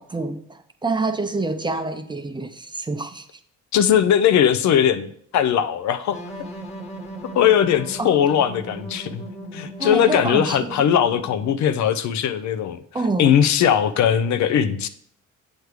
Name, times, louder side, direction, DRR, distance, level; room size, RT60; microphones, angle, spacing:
voice 1, 0.0-3.4 8.0-8.1 9.8-10.8 12.9-13.3, right 3 dB, 15° right, 8 dB, 0.5 m, -27 dB
voice 2, 3.7-6.2 7.3-9.2 9.5-12.8 13.2-14.9, left 9 dB, 70° left, 12 dB, 0.5 m, -19 dB
sound 1, 6.1-11.7, equal, 20° left, 1.5 m, -37 dB
8.0 x 3.2 x 4.9 m, 0.64 s
cardioid pair, 90°, 30 cm